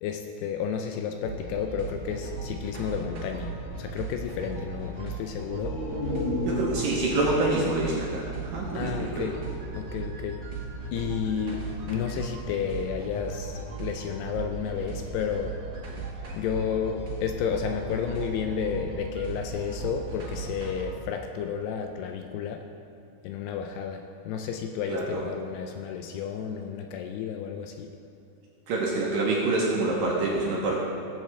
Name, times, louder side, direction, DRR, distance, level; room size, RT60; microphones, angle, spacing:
voice 1, 0.0-5.8 8.7-9.4 9.7-10.5 10.9-15.6 16.3-22.6 23.2-28.0, left 7 dB, 80° left, 4 dB, 2.5 m, -32 dB
sound 1, 1.2-20.8, right 4 dB, 55° right, 1.6 m, -37 dB
sound 2, 5.4-9.1 9.4-9.5, left 2 dB, 50° left, 2.5 m, -33 dB
voice 2, 6.5-9.3 24.9-25.3 28.7-30.8, right 2 dB, 70° right, -3 dB, 2.3 m, -26 dB
17.0 x 7.8 x 3.2 m, 2.8 s
omnidirectional pair, 5.1 m